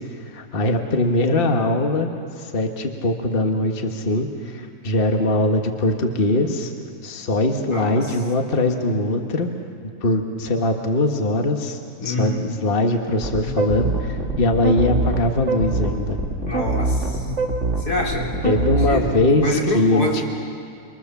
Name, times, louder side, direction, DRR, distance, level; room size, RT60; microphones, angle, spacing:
voice 1, 0.2-2.1 2.4-6.7 7.0-9.5 10.0-16.2 18.4-20.2, left 1 dB, 40° left, 3 dB, 1.6 m, -21 dB
voice 2, 7.7-8.0 12.0-12.5 16.5-17.3 17.8-18.4 18.8-19.0 19.4-20.2, left 2 dB, 85° left, -2 dB, 4.4 m, -25 dB
sound 1, 13.2-19.2, right 2 dB, 50° right, 3.0 m, -24 dB
29.5 x 23.5 x 7.1 m, 2.3 s
omnidirectional pair, 1.6 m